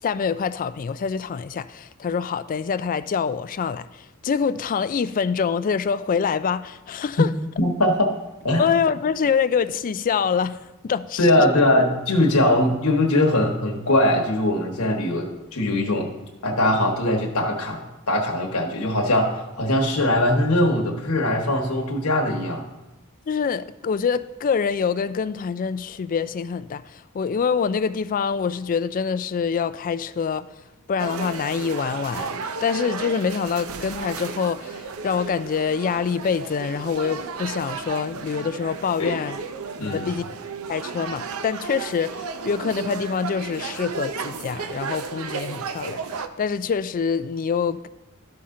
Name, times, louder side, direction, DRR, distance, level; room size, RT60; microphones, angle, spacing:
voice 1, 0.0-7.3 8.6-11.3 23.3-30.5 30.9-39.4 39.8-40.3 40.7-47.9, left 6 dB, 40° left, 0.3 m, -25 dB
voice 2, 7.6-8.1 8.4-8.7 11.2-16.1 16.4-22.7 39.0-39.2 39.8-40.1, left 1 dB, 85° left, 1.2 m, -21 dB
sound 1, 31.0-46.3, right 5 dB, 75° right, 0.6 m, -33 dB
12.5 x 5.6 x 3.7 m
head